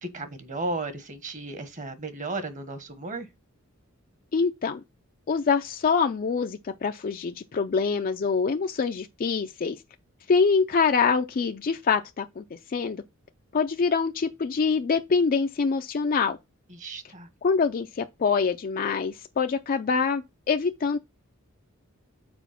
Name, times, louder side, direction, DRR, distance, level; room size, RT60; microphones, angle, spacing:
voice 1, 0.0-3.3 16.7-17.3, right 2 dB, 35° right, 1.2 m, -34 dB
voice 2, 4.3-4.8 5.3-9.8 10.3-13.0 13.5-16.4 17.4-21.0, left 5 dB, 40° left, 0.4 m, -25 dB
6.1 x 4.5 x 5.8 m
head